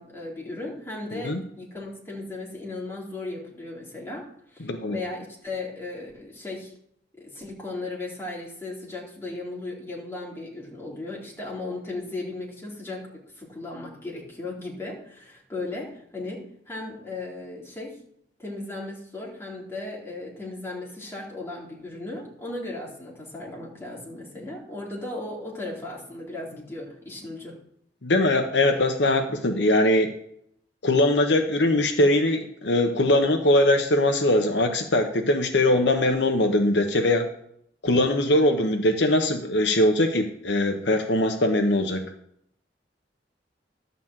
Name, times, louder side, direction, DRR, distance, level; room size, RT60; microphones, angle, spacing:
voice 1, 0.0-4.2 4.5-6.7 7.2-13.1 13.4-18.0 18.4-27.6, left 2 dB, 15° left, -4 dB, 2.9 m, -36 dB
voice 2, 4.6-5.0 28.0-30.1 30.8-37.3 37.8-42.0, left 1 dB, 75° left, 5 dB, 1.0 m, -21 dB
11.0 x 4.1 x 7.4 m, 0.69 s
head